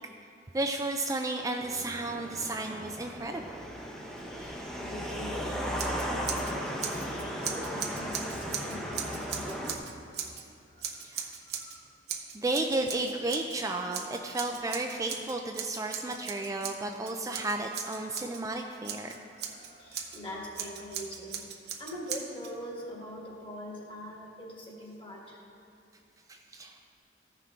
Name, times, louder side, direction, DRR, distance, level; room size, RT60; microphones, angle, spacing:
voice 1, 0.5-3.5 11.0-11.3 12.3-19.1 26.3-26.8, right 2 dB, 20° right, 3 dB, 0.4 m, -33 dB
sound 1, 1.6-9.8, equal, 5° left, 0.8 m, -36 dB
voice 2, 4.2-11.0 11.5-12.0 18.9-25.5, equal, 30° left, -3 dB, 1.8 m, -44 dB
Scissors, 5.7-6.5 6.8-10.4 10.8-11.8 12.1-13.6 13.9-18.4 18.8-20.2 20.5-22.5, right 8 dB, 65° right, 0.8 m, -39 dB
14.5 x 5.7 x 3.6 m, 2.7 s
head